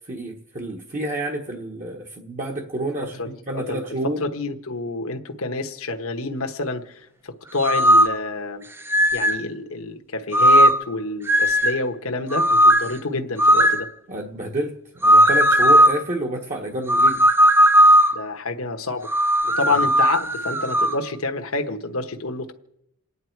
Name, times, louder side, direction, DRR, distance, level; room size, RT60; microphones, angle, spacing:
voice 1, 0.1-4.2 14.1-17.2 19.7-19.8, right 1 dB, 35° right, 1 dB, 1.3 m, -29 dB
voice 2, 3.0-8.7 9.1-13.9 18.1-19.1 19.4-22.5, left 3 dB, 70° left, 4 dB, 1.2 m, -28 dB
sound 1, 7.6-8.2 8.9-9.4 10.3-10.9 11.3-11.8 12.3-12.9 13.4-13.8 15.0-16.0 16.9-18.2 19.1-21.0, equal, 10° right, 0.6 m, -16 dB
28.5 x 9.7 x 4.6 m, 0.82 s
head